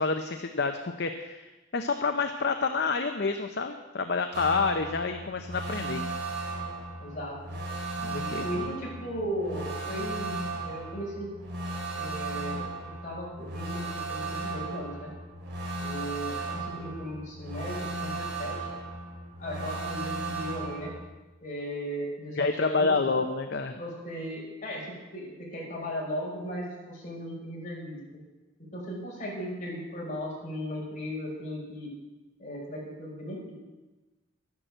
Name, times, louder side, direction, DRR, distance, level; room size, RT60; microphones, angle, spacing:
voice 1, 0.0-1.4 1.7-6.0 8.0-8.7 22.4-23.8, left 4 dB, 55° left, 6 dB, 0.8 m, -28 dB
sound 1, 4.3-21.0, right 2 dB, 55° right, 4.1 m, -36 dB
voice 2, 7.0-7.6 8.1-11.3 11.9-15.1 15.8-18.6 19.4-20.9 21.4-23.0 23.7-28.0 28.6-31.9 32.4-33.5, equal, 40° left, -4 dB, 5.6 m, -37 dB
12.5 x 11.0 x 7.8 m, 1.2 s
head